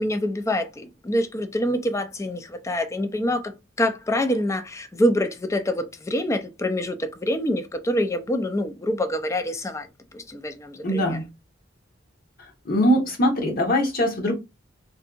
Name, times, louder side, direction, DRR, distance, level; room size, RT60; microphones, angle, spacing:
voice 1, 0.0-9.9 10.1-11.2, left 1 dB, 15° left, 0.3 m, -26 dB
voice 2, 10.8-11.2 12.6-14.3, equal, 50° left, 0.9 m, -21 dB
2.7 x 2.5 x 2.4 m
head